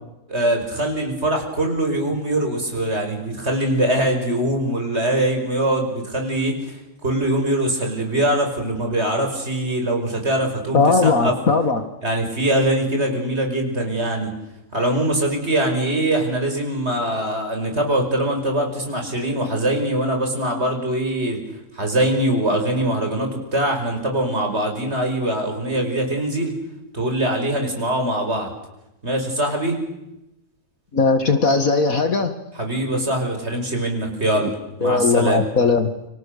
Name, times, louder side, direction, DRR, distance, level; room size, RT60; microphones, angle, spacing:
voice 1, 0.3-11.3 12.0-14.3 14.7-21.4 21.8-26.5 26.9-28.5 29.0-29.8 32.6-35.4, right 1 dB, 40° right, 3 dB, 5.7 m, -22 dB
voice 2, 10.7-11.8 30.9-32.3 34.8-35.9, left 4 dB, 55° left, 7 dB, 2.2 m, -18 dB
29.5 x 26.0 x 6.7 m, 0.91 s
omnidirectional pair, 1.7 m